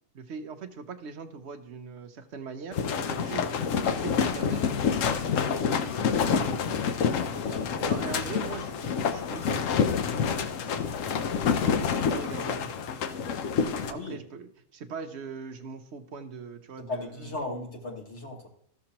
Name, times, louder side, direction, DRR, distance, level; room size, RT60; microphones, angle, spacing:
voice 1, 0.1-4.7 6.2-6.5 7.8-9.9 11.6-12.7 13.9-17.3, right 5 dB, 55° right, 7 dB, 0.9 m, -40 dB
sound 1, 2.7-13.9, left 6 dB, 65° left, 1.0 m, -27 dB
voice 2, 5.2-5.7 7.5-7.7 12.1-12.3 13.9-14.2 16.9-18.5, left 2 dB, 50° left, 0 dB, 1.9 m, -37 dB
13.5 x 6.6 x 2.9 m, 0.71 s
omnidirectional pair, 1.5 m